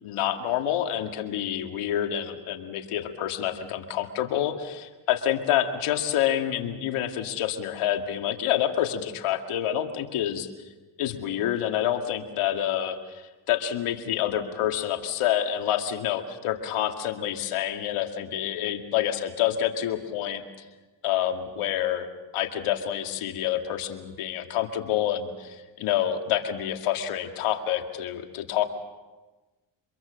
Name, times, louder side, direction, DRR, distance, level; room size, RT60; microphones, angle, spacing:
voice 1, 0.0-10.5 11.0-20.4 21.0-22.1 22.3-28.7, left 11 dB, 80° left, 5 dB, 2.3 m, -27 dB
25.5 x 22.5 x 6.5 m, 1.2 s
supercardioid pair, 70°, 50 cm